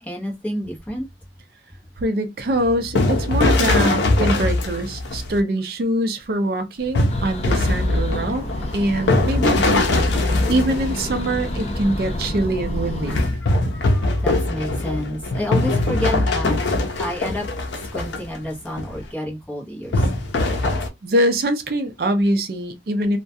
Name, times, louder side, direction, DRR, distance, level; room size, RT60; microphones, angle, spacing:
voice 1, 0.0-1.1 8.2-8.3 9.9-10.2 13.0-17.5 17.9-20.4, equal, 10° left, 0.7 m, -30 dB
voice 2, 2.0-8.4 8.7-13.2 21.0-23.2, right 1 dB, 55° right, 0.5 m, -23 dB
sound 1, 2.5-5.4 6.9-11.6 13.1-18.4 18.8-19.0 19.9-20.9, left 2 dB, 90° left, 0.5 m, -21 dB
sound 2, 7.1-13.3, left 1 dB, 35° left, 0.5 m, -29 dB
2.3 x 2.2 x 2.6 m
head